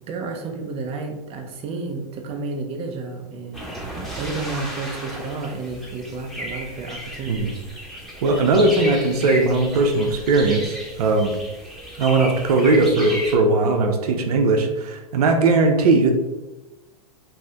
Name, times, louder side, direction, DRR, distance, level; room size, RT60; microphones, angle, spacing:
voice 1, 0.0-3.7 4.2-7.6, right 3 dB, 30° right, 2 dB, 0.5 m, -31 dB
sound 1, 3.5-13.4, equal, ahead, 0.9 m, -34 dB
voice 2, 8.2-11.3 12.0-16.1, right 3 dB, 70° right, 4 dB, 0.6 m, -19 dB
2.7 x 2.5 x 3.2 m, 1.1 s
hypercardioid pair, 110°, 20 cm